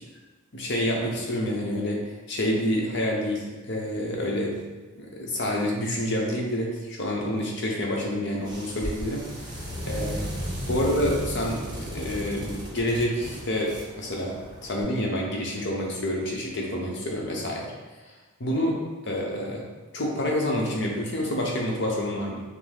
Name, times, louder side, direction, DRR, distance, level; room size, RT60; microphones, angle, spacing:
voice 1, 0.5-4.6 4.9-10.3 10.7-17.7 18.4-19.6 19.9-22.4, left 1 dB, 55° left, -2 dB, 0.8 m, -28 dB
sound 1, 8.4-14.8, equal, 20° right, 0.9 m, -35 dB
5.8 x 2.0 x 3.4 m, 1.2 s
head